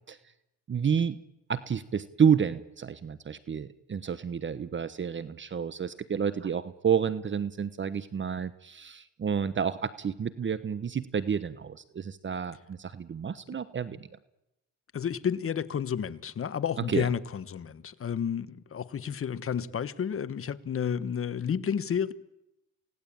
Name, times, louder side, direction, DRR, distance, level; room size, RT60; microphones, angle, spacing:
voice 1, 0.7-1.2 1.5-14.1 16.9-17.1, right 7 dB, 40° right, 1.1 m, -30 dB
voice 2, 14.9-22.1, left 8 dB, 45° left, 1.4 m, -31 dB
28.5 x 18.0 x 8.9 m
cardioid pair, 90°, 30 cm